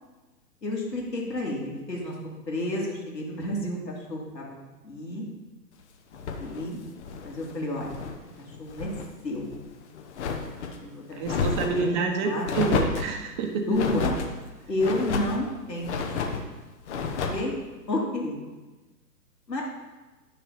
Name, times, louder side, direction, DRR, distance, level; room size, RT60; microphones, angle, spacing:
voice 1, 0.6-2.1 2.5-4.6 4.8-5.2 6.4-6.8 7.2-8.0 8.4-8.9 9.2-9.5 10.8-12.5 13.7-14.2 14.7-16.5 17.3-17.5 17.9-18.4 19.5-19.6, left 1 dB, 80° left, -3 dB, 3.1 m, -30 dB
sound 1, 6.1-8.2 8.5-9.1 9.5-10.8 11.2-11.9 12.5-13.1 13.7-14.3 14.8-15.4 15.8-16.5 16.9-17.5, left 5 dB, 45° left, 1.2 m, -31 dB
voice 2, 11.1-13.7, right 4 dB, 30° right, 4 dB, 1.1 m, -28 dB
10.5 x 6.8 x 5.2 m, 1.2 s
figure-of-eight pair, 125°, 49 cm